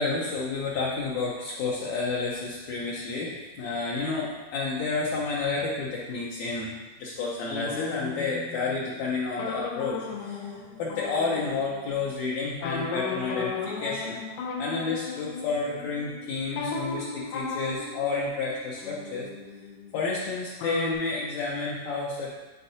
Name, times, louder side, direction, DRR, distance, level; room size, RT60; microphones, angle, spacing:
voice 1, 0.0-6.7 7.0-14.2 14.6-19.3 19.9-22.3, left 4 dB, 70° left, -5 dB, 1.8 m, -30 dB
sound 1, 7.5-12.1 12.6-20.3 20.6-20.9, left 4 dB, 90° left, 2.5 m, -36 dB
9.6 x 4.4 x 2.8 m, 1.2 s
omnidirectional pair, 3.7 m